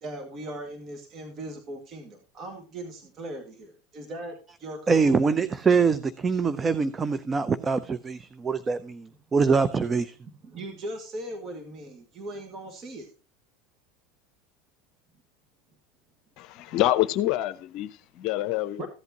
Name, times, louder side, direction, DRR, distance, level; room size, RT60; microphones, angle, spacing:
voice 1, 0.0-5.2 10.4-13.1 18.8-18.9, right 1 dB, 40° right, 2.1 m, -39 dB
voice 2, 4.9-10.1, right 5 dB, 25° right, 0.6 m, -24 dB
voice 3, 16.4-18.9, left 15 dB, 60° left, 0.6 m, -26 dB
15.0 x 8.2 x 2.9 m
hypercardioid pair, 95°, 0 cm